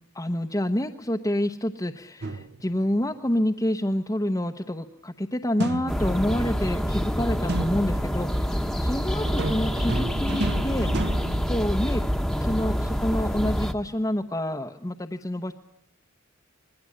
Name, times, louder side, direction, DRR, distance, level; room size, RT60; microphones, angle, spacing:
voice 1, 0.1-11.2 11.5-12.0 12.3-15.5, left 1 dB, 15° left, 2 dB, 0.9 m, -28 dB
sound 1, 2.2-2.9 5.6-6.5 7.5-8.2 9.2-12.2, right 2 dB, 55° right, 1.1 m, -32 dB
sound 2, 5.9-13.7, equal, ahead, 1.2 m, -26 dB
26.5 x 20.5 x 8.6 m, 0.73 s
head